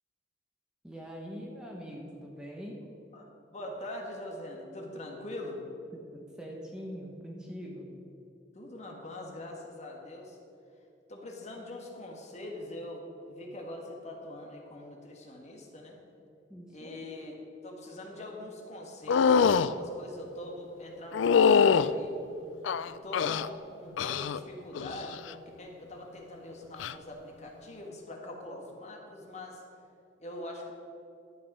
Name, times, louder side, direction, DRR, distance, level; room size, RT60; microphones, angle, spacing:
voice 1, 0.8-2.9 5.9-7.9 16.5-17.0, equal, 5° right, -2 dB, 1.2 m, -43 dB
voice 2, 3.5-5.6 8.5-10.4 11.1-16.0 16.7-17.4 17.6-22.1 22.9-29.6 30.2-30.7, left 1 dB, 35° left, 0 dB, 1.6 m, -43 dB
sound 1, 19.1-19.7 21.1-21.9 22.6-23.5 24.0-24.4 24.7-25.2 26.7-26.9, left 6 dB, 85° left, 0.4 m, -23 dB
12.0 x 8.9 x 5.4 m, 2.6 s
head